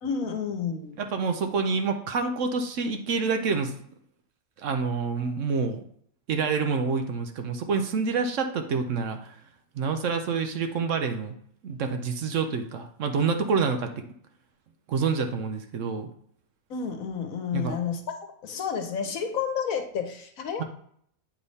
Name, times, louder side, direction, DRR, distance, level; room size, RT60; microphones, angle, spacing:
voice 1, 0.0-1.0 16.7-18.0 18.4-20.6, left 6 dB, 70° left, 5 dB, 1.3 m, -30 dB
voice 2, 1.0-3.7 4.6-5.8 6.3-9.3 9.7-11.3 11.6-14.0 14.9-16.1 17.5-17.7 20.6-20.7, right 5 dB, 65° right, 7 dB, 1.0 m, -27 dB
7.9 x 3.5 x 4.1 m, 0.66 s
omnidirectional pair, 1.5 m